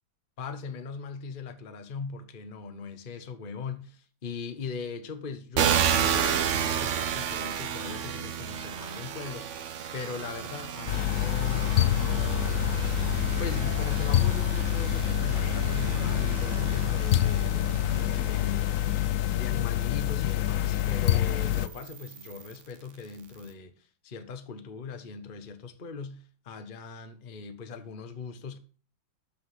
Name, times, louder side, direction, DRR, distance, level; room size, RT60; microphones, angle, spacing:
voice 1, 0.4-12.8 13.4-28.6, left 5 dB, 30° left, 1.1 m, -40 dB
sound 1, 5.5-18.9 19.6-22.6, right 8 dB, 55° right, 0.8 m, -32 dB
sound 2, 10.9-21.7, left 13 dB, 80° left, 0.7 m, -26 dB
13.5 x 6.0 x 5.8 m
omnidirectional pair, 2.1 m